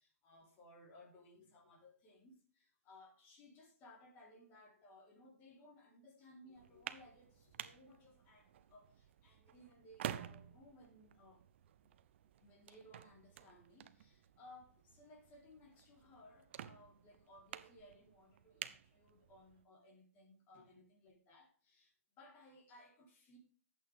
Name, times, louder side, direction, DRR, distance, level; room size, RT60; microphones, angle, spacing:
voice 1, 0.0-11.4 12.4-23.4, left 1 dB, 25° left, 4.0 m, -62 dB
sound 1, 6.6-19.6, right 11 dB, 50° right, 0.8 m, -52 dB
11.0 x 8.7 x 3.6 m
hypercardioid pair, 145°, 8 cm